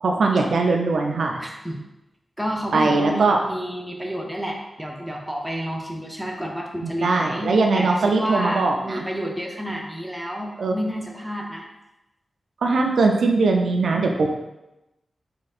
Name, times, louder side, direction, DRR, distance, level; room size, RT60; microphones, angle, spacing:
voice 1, 0.0-1.4 2.7-3.4 6.8-9.0 10.6-10.7 12.6-14.3, right 3 dB, 90° right, 2 dB, 0.4 m, -20 dB
voice 2, 1.4-1.8 2.4-11.7, equal, ahead, -1 dB, 0.5 m, -30 dB
4.2 x 3.7 x 2.4 m, 0.95 s
wide cardioid pair, 180°, 0 cm